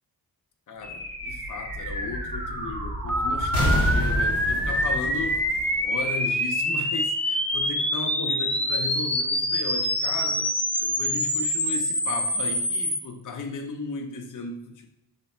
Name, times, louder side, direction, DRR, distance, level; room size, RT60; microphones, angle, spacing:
voice 1, 0.7-5.4 5.8-10.5 10.8-14.9, left 4 dB, 55° left, 0.8 m, -35 dB
sound 1, 0.8-6.5, equal, 70° right, 2.1 m, -29 dB
sound 2, 3.1-13.0, equal, 5° left, 0.5 m, -25 dB
6.7 x 3.3 x 4.3 m
wide cardioid pair, 95°, 37 cm